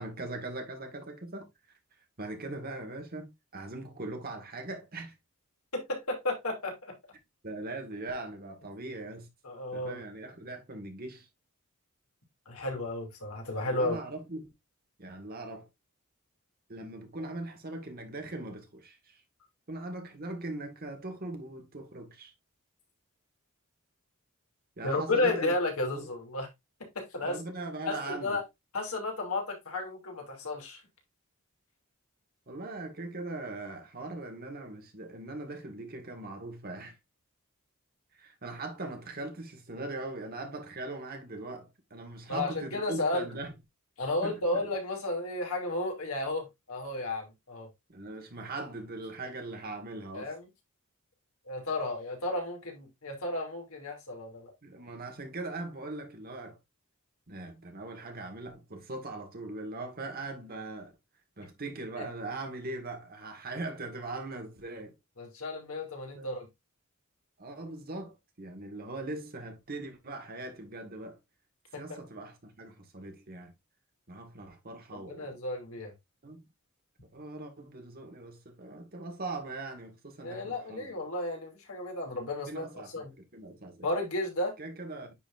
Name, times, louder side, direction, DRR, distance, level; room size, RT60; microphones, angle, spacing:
voice 1, 0.0-1.5 2.2-5.1 7.4-9.3 9.7-11.3 13.6-14.5 15.0-15.7 16.7-19.2 19.7-22.3 24.8-25.5 25.9-26.1 27.2-28.4 32.5-37.0 38.1-43.5 44.2-44.7 47.9-50.3 54.6-56.6 57.3-60.9 61.4-64.9 66.2-66.3 67.4-71.2 71.7-73.5 74.1-75.4 76.2-76.5 77.1-80.9 82.5-83.9 84.6-85.1, right 2 dB, 45° right, 1.7 m, -40 dB
voice 2, 5.7-6.9 9.4-10.0 12.5-14.0 24.8-26.5 26.9-27.4 27.9-28.4 28.7-30.8 42.3-43.2 44.0-47.7 50.1-50.4 51.5-54.5 62.0-62.1 65.2-66.5 71.7-71.8 74.9-75.9 80.2-83.1 83.8-84.5, left 2 dB, 75° left, 2.8 m, -33 dB
10.0 x 4.1 x 2.6 m
head